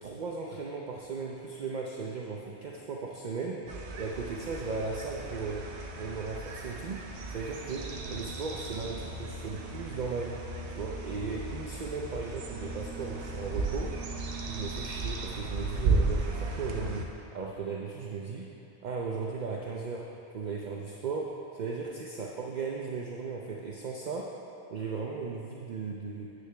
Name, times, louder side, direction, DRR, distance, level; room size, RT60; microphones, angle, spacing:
voice 1, 0.0-3.7 4.0-5.7 6.0-13.9 14.5-18.5 18.8-24.4 24.7-26.3, right 4 dB, 50° right, -1 dB, 0.7 m, -36 dB
sound 1, 3.7-17.1, right 3 dB, 85° right, 1.0 m, -35 dB
9.7 x 7.9 x 3.4 m, 2.8 s
omnidirectional pair, 1.1 m